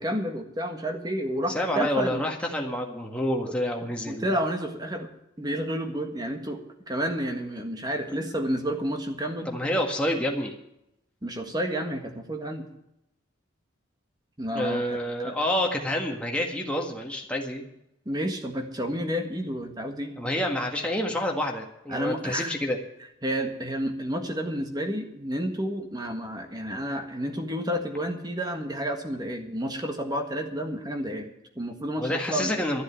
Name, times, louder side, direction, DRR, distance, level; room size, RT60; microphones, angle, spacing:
voice 1, 0.0-2.3 3.4-3.6 4.1-5.1 5.4-9.5 11.2-12.7 14.4-15.0 15.2-15.4 18.1-20.2 21.9-22.6 23.2-32.5, equal, 20° right, 5 dB, 1.6 m, -30 dB
voice 2, 1.5-4.3 9.5-10.5 14.5-17.6 20.2-22.8 32.0-32.8, left 1 dB, 5° left, 0 dB, 1.8 m, -28 dB
13.0 x 7.9 x 9.2 m, 0.84 s
head